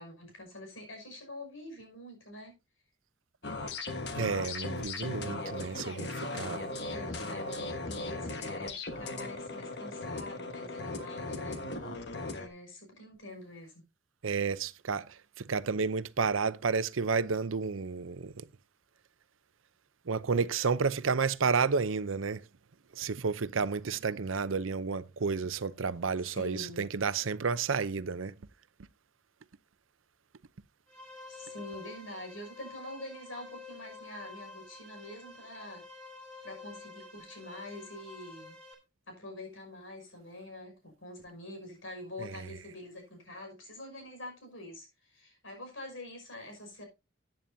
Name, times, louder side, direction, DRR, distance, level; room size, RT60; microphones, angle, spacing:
voice 1, 0.0-2.5 6.1-12.1 12.3-13.8 26.2-26.9 31.3-35.9 36.4-38.6 39.1-46.8, left 1 dB, 85° left, 5.8 m, -46 dB
sound 1, 3.4-12.5, left 2 dB, 55° left, 1.4 m, -38 dB
voice 2, 4.2-6.6 14.2-15.1 15.4-18.3 20.1-22.4 23.0-28.3 42.2-42.6, right 5 dB, 85° right, 0.6 m, -31 dB
sound 2, 30.9-38.7, left 3 dB, 5° left, 2.9 m, -49 dB
14.0 x 9.1 x 2.7 m
head